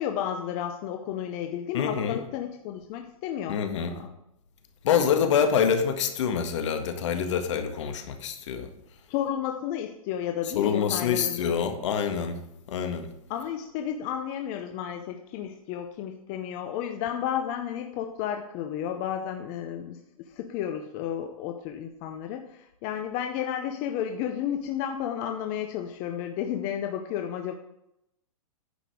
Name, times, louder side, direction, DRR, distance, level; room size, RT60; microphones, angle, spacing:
voice 1, 0.0-3.6 3.9-4.1 9.1-11.6 13.3-20.0 20.3-27.5, left 9 dB, 25° left, 5 dB, 0.6 m, -32 dB
voice 2, 1.7-2.2 3.5-4.0 4.8-8.7 10.4-12.4 12.7-13.1, left 7 dB, 55° left, 6 dB, 1.7 m, -26 dB
10.0 x 5.2 x 6.3 m, 0.82 s
hypercardioid pair, 165°, 18 cm